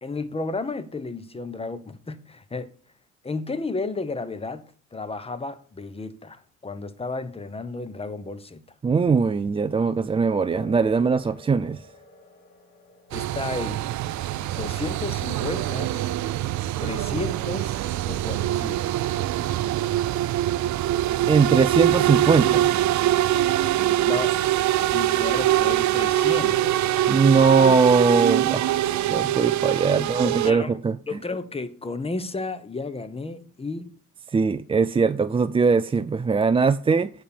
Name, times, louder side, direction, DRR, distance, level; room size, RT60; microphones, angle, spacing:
voice 1, 0.0-2.7 3.2-4.6 4.9-8.6 13.1-13.8 14.5-15.9 16.8-18.8 24.1-24.4 24.9-27.1 30.0-30.8 31.1-33.9, left 3 dB, 20° left, 1.0 m, -33 dB
voice 2, 8.8-11.8 21.3-22.7 27.1-31.0 34.3-37.1, right 5 dB, 20° right, 0.3 m, -21 dB
sound 1, 10.5-18.5, equal, 50° left, 3.1 m, -51 dB
sound 2, 13.1-30.5, right 13 dB, 70° right, 0.5 m, -23 dB
9.1 x 4.3 x 6.9 m
cardioid pair, 90°, 30 cm